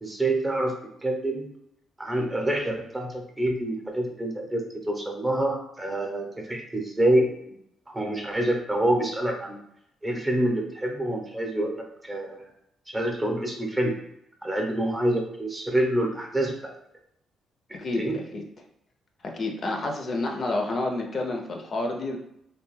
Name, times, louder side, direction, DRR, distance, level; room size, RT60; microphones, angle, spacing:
voice 1, 0.0-0.7 1.0-1.5 2.0-7.3 7.9-9.6 10.0-12.5 12.9-13.9 14.4-16.7 18.0-18.2, right 1 dB, 15° right, 2 dB, 0.6 m, -27 dB
voice 2, 17.7-18.4 19.2-22.2, left 2 dB, 45° left, 2 dB, 0.4 m, -29 dB
2.5 x 2.2 x 3.0 m, 0.78 s
cardioid pair, 90°, 0 cm